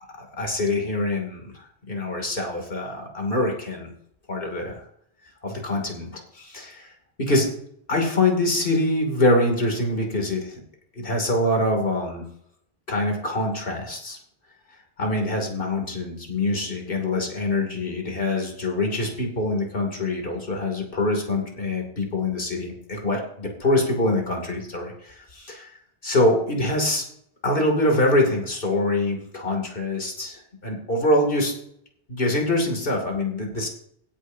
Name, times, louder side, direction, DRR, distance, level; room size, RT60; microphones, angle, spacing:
voice 1, 0.4-3.9 4.3-4.8 5.4-6.1 6.3-6.9 7.2-7.5 7.9-10.6 10.9-12.2 12.9-14.2 15.0-25.7 26.0-27.0 27.4-31.5 32.1-33.7, left 1 dB, 55° left, 2 dB, 3.0 m, -24 dB
16.5 x 9.9 x 2.8 m, 0.68 s
omnidirectional pair, 1.1 m